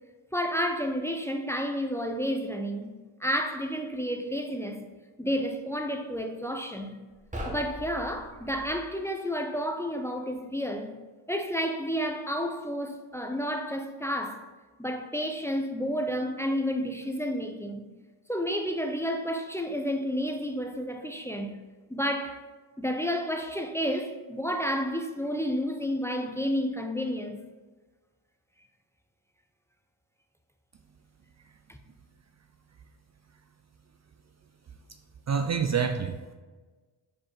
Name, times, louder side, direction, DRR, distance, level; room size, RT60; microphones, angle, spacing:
voice 1, 0.3-2.9 3.2-4.9 5.2-7.0 7.5-10.9 11.3-14.5 14.8-17.9 18.3-21.6 21.9-22.4 22.8-27.4 31.7-31.8, equal, 5° left, 0.6 m, -31 dB
sound 1, 7.1-8.8, right 1 dB, 15° right, 1.5 m, -39 dB
voice 2, 35.3-36.3, right 6 dB, 35° right, 0.5 m, -27 dB
4.8 x 4.7 x 4.6 m
cardioid pair, 70°, 47 cm